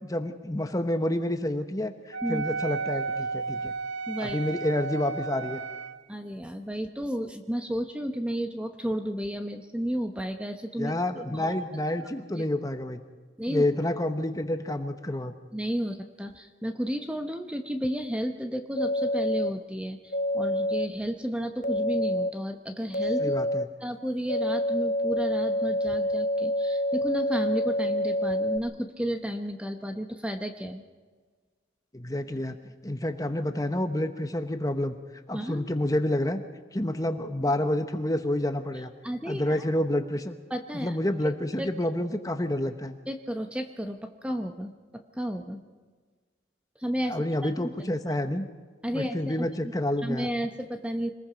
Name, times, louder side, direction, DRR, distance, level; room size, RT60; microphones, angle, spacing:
voice 1, 0.0-3.7 4.2-5.6 10.8-13.0 13.5-15.3 23.2-23.7 31.9-32.6 32.8-35.0 35.3-36.4 36.7-38.9 39.2-40.4 40.8-43.0 47.1-48.4 48.9-50.3, left 1 dB, 20° left, 8 dB, 1.0 m, -29 dB
Wind instrument woodwind instrument, 2.1-6.0, right 4 dB, 65° right, 0.7 m, -33 dB
voice 2, 4.1-4.4 6.1-11.0 11.3-11.6 12.4-12.5 13.4-13.6 15.5-23.4 23.8-30.8 35.3-35.6 37.4-37.5 39.0-39.6 40.5-41.0 41.6-41.7 43.1-45.6 46.8-47.1 47.4-47.9 48.8-49.5 50.0-51.1, equal, 5° right, 5 dB, 0.9 m, -32 dB
sound 1, 18.8-19.5 20.1-20.9 21.6-22.3 22.9-23.6 24.3-28.6, left 1 dB, 45° left, 1.2 m, -27 dB
26.0 x 20.0 x 5.1 m, 1.5 s
head